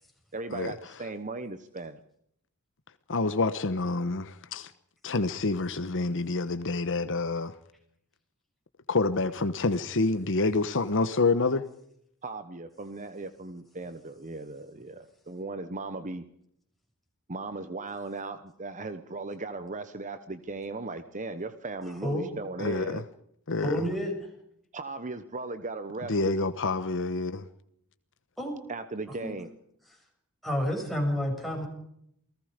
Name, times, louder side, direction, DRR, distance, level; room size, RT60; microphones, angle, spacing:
voice 1, 0.3-2.0 12.2-16.2 17.3-23.0 24.7-26.3 28.7-29.5, right 3 dB, 35° right, 1.1 m, -37 dB
voice 2, 3.1-4.7 5.0-7.5 8.9-11.6 22.6-23.0 23.5-23.8 26.1-27.4, left 3 dB, 60° left, 1.2 m, -27 dB
voice 3, 23.6-24.1 28.4-28.6 29.2-29.3 30.4-31.7, equal, ahead, 6.7 m, -29 dB
28.5 x 18.5 x 5.2 m
head